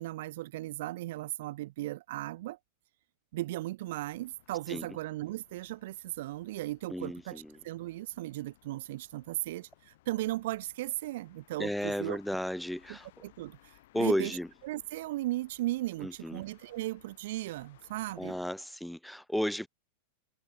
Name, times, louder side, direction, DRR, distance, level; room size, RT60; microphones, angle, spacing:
voice 1, 0.0-2.6 3.3-12.2 12.9-14.4 14.6-18.4, right 17 dB, 55° right, 0.6 m, -36 dB
sound 1, 3.8-18.5, left 17 dB, 55° left, 4.8 m, -63 dB
voice 2, 6.9-7.5 11.6-13.1 13.9-14.5 16.0-16.4 18.2-19.7, equal, ahead, 1.0 m, -33 dB
figure-of-eight pair, 90°, 0 cm